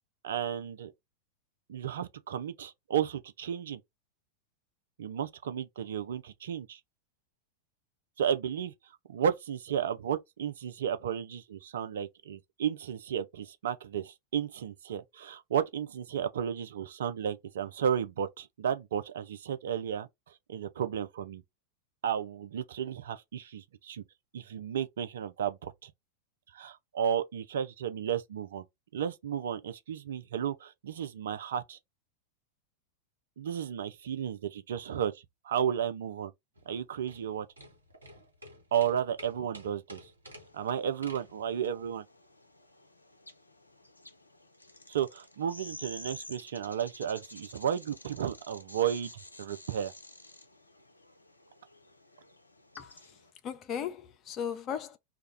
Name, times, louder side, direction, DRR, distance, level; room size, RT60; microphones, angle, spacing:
voice 1, 0.2-0.9 1.7-3.8 5.0-6.8 8.2-8.7 9.1-20.1 20.5-21.4 22.0-24.0 24.3-25.9 26.5-28.6 28.9-31.8 33.4-36.3 36.7-37.5 38.7-40.0 40.5-42.0 44.9-49.1 49.4-49.9, right 8 dB, 60° right, 0.3 m, -33 dB
sound 1, 36.6-41.9, equal, 80° right, 0.9 m, -52 dB
sound 2, 40.3-53.3, left 1 dB, 80° left, 0.4 m, -52 dB
voice 2, 52.8-53.2 53.4-55.0, left 8 dB, 35° left, 0.5 m, -37 dB
2.3 x 2.1 x 3.4 m
figure-of-eight pair, 90°, 0 cm